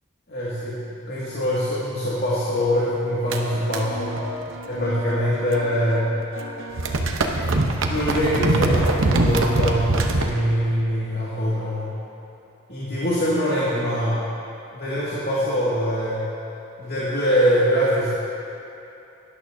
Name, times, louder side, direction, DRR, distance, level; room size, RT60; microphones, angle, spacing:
voice 1, 0.3-0.8 1.1-4.2 4.7-6.2 7.9-11.9 12.7-14.2 14.7-16.3 16.8-18.1, equal, 50° left, -9 dB, 2.2 m, -23 dB
sound 1, 3.3-6.0 6.2-10.3, right 2 dB, 65° right, 0.9 m, -24 dB
19.0 x 11.5 x 2.7 m, 2.8 s
head